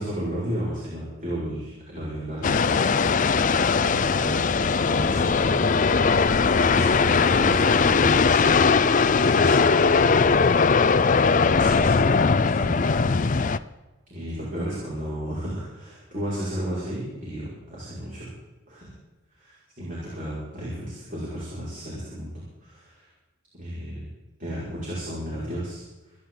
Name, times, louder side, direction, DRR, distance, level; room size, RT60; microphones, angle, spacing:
voice 1, 0.0-3.2 3.8-10.5 11.4-13.0 14.1-18.3 18.7-18.8 19.3-23.1 23.6-24.1 24.4-26.2, equal, 40° right, -8 dB, 5.6 m, -34 dB
sound 1, 2.4-13.6, left 5 dB, 40° left, 0.5 m, -20 dB
27.5 x 10.5 x 3.9 m, 1.1 s
head